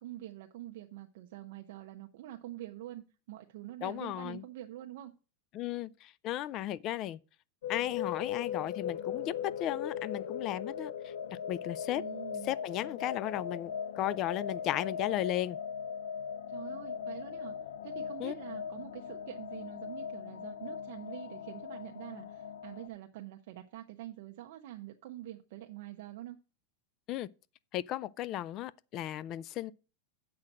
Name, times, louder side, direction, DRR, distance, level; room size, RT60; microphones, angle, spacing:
voice 1, 0.0-5.1 11.9-12.6 16.5-17.5 17.8-26.4, right 13 dB, 55° right, 0.8 m, -46 dB
voice 2, 3.8-4.4 5.5-7.2 7.7-12.0 12.4-15.6 18.2-18.3 27.1-27.3 27.7-29.7, left 13 dB, 30° left, 0.3 m, -35 dB
sound 1, 7.6-22.9, left 8 dB, 90° left, 0.7 m, -39 dB
7.8 x 5.8 x 6.1 m
supercardioid pair, 165°, 0 cm